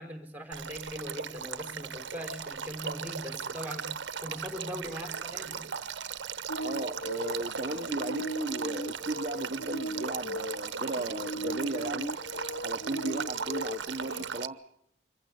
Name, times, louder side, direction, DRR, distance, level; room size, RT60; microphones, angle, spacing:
voice 1, 0.0-3.9 4.2-5.7, equal, 10° right, 6 dB, 4.6 m, -40 dB
Male speech man speaking / Stream / Trickle dribble, 0.5-14.5, right 7 dB, 85° right, 0.9 m, -38 dB
sound 1, 6.5-14.3, equal, 80° left, 1.0 m, -38 dB
voice 2, 6.6-12.1 12.6-14.6, right 2 dB, 40° right, 5 dB, 0.9 m, -35 dB
25.5 x 15.5 x 9.7 m, 0.74 s
head